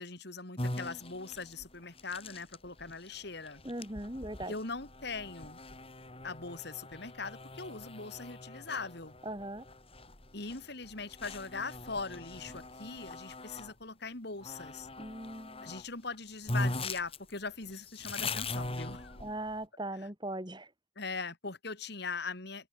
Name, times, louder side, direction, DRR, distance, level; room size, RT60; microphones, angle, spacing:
voice 1, 0.0-3.6 4.5-5.6 6.2-9.1 10.3-14.9 15.6-19.2 21.0-22.7, left 4 dB, 55° left, 2.7 m, -41 dB
sound 1, 0.6-13.7 14.4-15.8 16.1-16.2 16.5-19.6, left 2 dB, 30° left, 4.1 m, -41 dB
voice 2, 3.6-4.5 9.2-9.7 15.0-15.7 19.2-20.7, right 1 dB, 20° right, 5.3 m, -39 dB
open air
head